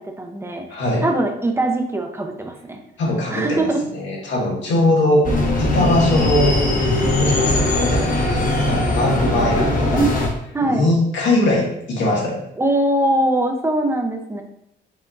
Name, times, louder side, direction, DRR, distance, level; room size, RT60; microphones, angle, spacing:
voice 1, 0.0-2.8 3.3-3.8 9.9-10.1 10.5-10.9 12.6-14.4, right 1 dB, 10° right, 3 dB, 0.8 m, -22 dB
voice 2, 0.7-1.1 3.0-5.3 5.6-6.6 7.1-9.9 10.6-12.4, left 1 dB, 70° left, -2 dB, 1.6 m, -21 dB
sound 1, 5.2-10.3, left 1 dB, 45° left, 1.1 m, -19 dB
5.6 x 3.5 x 2.7 m, 0.76 s
cardioid pair, 90°, 20 cm